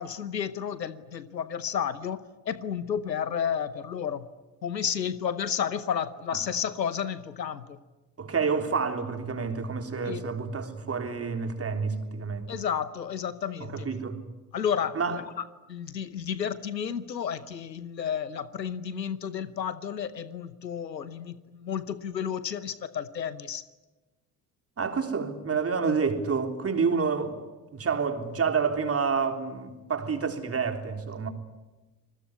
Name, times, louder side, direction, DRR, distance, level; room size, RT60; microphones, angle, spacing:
voice 1, 0.0-4.3 4.6-7.8 10.0-10.2 12.5-13.9 14.5-23.6, left 8 dB, 90° left, 1.0 m, -32 dB
voice 2, 8.2-12.5 13.7-14.2 15.0-15.2 24.8-27.4 27.7-31.3, right 5 dB, 30° right, 3.6 m, -28 dB
27.5 x 21.0 x 9.7 m
figure-of-eight pair, 55°, 49 cm